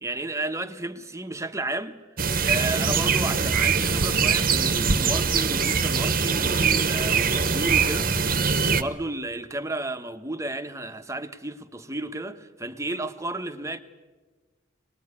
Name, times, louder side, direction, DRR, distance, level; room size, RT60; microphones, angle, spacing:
voice 1, 0.0-2.0 2.4-8.1 8.7-13.8, right 2 dB, 15° right, 1.1 m, -32 dB
sound 1, 2.2-8.8, right 5 dB, 50° right, 1.2 m, -23 dB
24.5 x 20.0 x 9.8 m
head